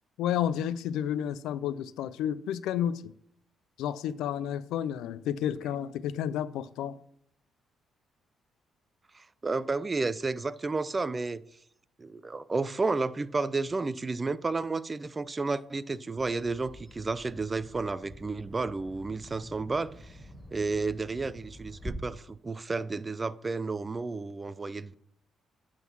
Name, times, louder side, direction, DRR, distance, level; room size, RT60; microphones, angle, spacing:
voice 1, 0.2-3.1 3.8-7.0, left 10 dB, 90° left, 0.4 m, -31 dB
voice 2, 9.1-11.4 12.0-20.2 20.5-24.9, right 3 dB, 25° right, 0.4 m, -32 dB
Bird vocalization bird call bird song, 16.2-21.9, equal, 5° right, 2.4 m, -47 dB
9.4 x 3.8 x 6.1 m
cardioid pair, 90°, 0 cm